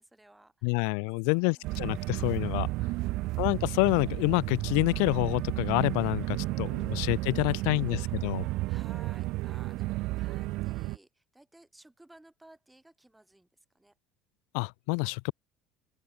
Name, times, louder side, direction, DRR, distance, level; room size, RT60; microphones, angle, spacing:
voice 1, 0.0-1.7 6.3-14.0, right 1 dB, 5° right, 5.2 m, -58 dB
voice 2, 0.6-2.7 3.4-8.5 14.5-15.3, left 40 dB or more, 85° left, 0.4 m, -28 dB
sound 1, 1.6-11.0, right 20 dB, 70° right, 0.6 m, -32 dB
open air
cardioid pair, 115°, 0 cm